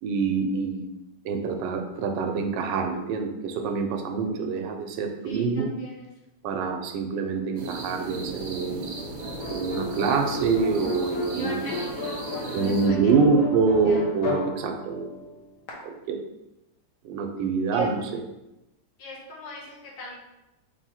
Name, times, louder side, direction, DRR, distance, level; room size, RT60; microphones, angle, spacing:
voice 1, 0.0-0.9 1.2-5.9 6.4-8.8 9.5-11.7 12.5-15.1 15.8-16.2 17.0-18.2, right 4 dB, 85° right, 4 dB, 1.2 m, -25 dB
voice 2, 5.2-6.1 11.3-13.2 13.8-14.0 17.7-17.9 19.0-20.2, left 2 dB, 75° left, -4 dB, 1.7 m, -42 dB
sound 1, 7.6-12.9, right 3 dB, 65° right, 1.1 m, -36 dB
sound 2, 9.2-15.7, left 3 dB, 55° left, 1.1 m, -34 dB
3.4 x 2.7 x 4.2 m, 0.95 s
omnidirectional pair, 1.9 m